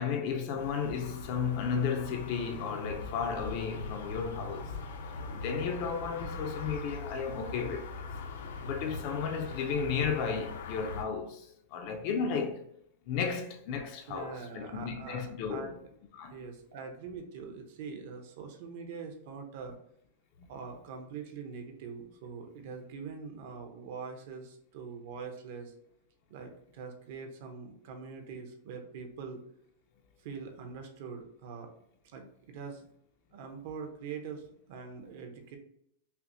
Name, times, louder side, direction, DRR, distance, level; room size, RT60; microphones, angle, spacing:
voice 1, 0.0-4.7 5.3-8.0 8.6-12.6 13.1-15.8 16.1-16.3 20.4-20.5, left 6 dB, 35° left, 0.4 m, -34 dB
sound 1, 0.6-11.0, left 3 dB, 80° left, 0.6 m, -41 dB
voice 2, 14.1-15.7 16.2-19.8 20.5-25.7 26.3-29.4 30.2-31.7 32.1-32.8 33.3-35.6, right 5 dB, 45° right, 0.7 m, -43 dB
5.6 x 2.1 x 2.6 m
supercardioid pair, 175°, 0 cm